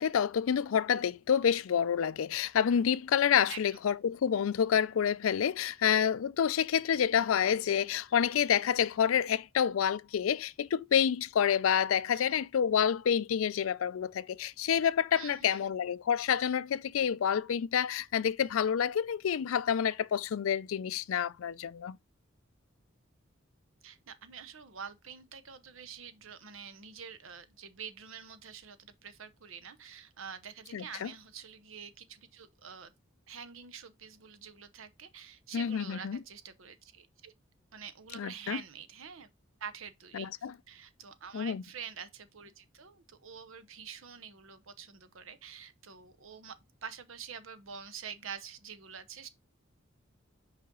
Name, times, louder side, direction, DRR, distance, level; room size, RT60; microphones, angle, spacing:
voice 1, 0.0-22.0 30.7-31.1 35.5-36.2 38.1-38.6 40.1-40.5 41.3-41.6, left 8 dB, 85° left, 0.4 m, -28 dB
voice 2, 15.1-15.7 23.8-32.9 33.3-37.3 37.7-39.3 39.6-49.3, right 7 dB, 80° right, 0.8 m, -47 dB
5.5 x 5.1 x 3.7 m
head